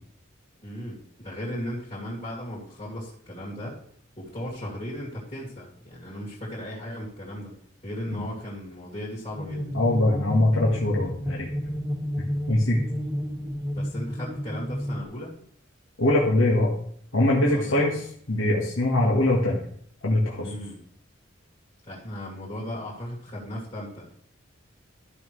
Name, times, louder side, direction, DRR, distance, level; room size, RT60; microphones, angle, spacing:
voice 1, 0.6-3.8 4.2-7.5 7.8-9.7 13.7-15.3 17.4-17.9 20.3-20.8 21.9-24.0, equal, 30° left, -7 dB, 2.5 m, -36 dB
sound 1, 9.3-15.0, equal, 20° right, 1.3 m, -31 dB
voice 2, 9.7-11.5 12.5-12.8 16.0-16.7 17.1-18.0 18.3-19.6 20.0-20.5, left 1 dB, 85° left, -4 dB, 1.6 m, -22 dB
13.5 x 5.6 x 3.2 m, 0.63 s
head